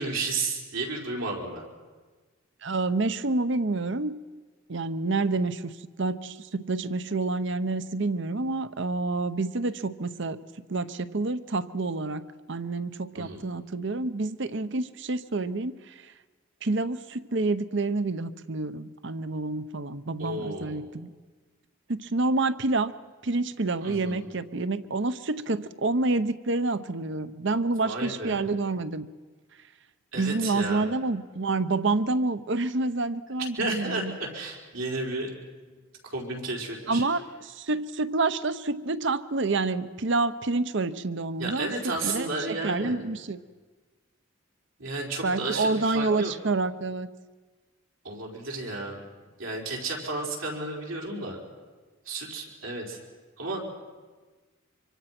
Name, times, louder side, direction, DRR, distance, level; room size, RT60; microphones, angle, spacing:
voice 1, 0.0-1.6 13.1-13.4 20.2-20.8 23.8-24.2 27.8-28.5 30.1-30.8 33.6-35.3 36.0-37.0 41.4-42.9 44.8-46.3 48.0-49.0 49.4-51.4 52.0-53.0 53.4-53.6, right 2 dB, 85° right, 0 dB, 4.9 m, -32 dB
voice 2, 2.6-4.1 4.7-5.7 6.0-10.4 10.7-12.2 12.5-15.9 16.6-21.1 21.9-22.9 23.2-29.1 30.2-34.2 36.9-41.7 42.0-43.4 45.2-47.1, right 3 dB, 65° right, 14 dB, 0.8 m, -28 dB
25.5 x 24.0 x 6.0 m, 1.4 s
head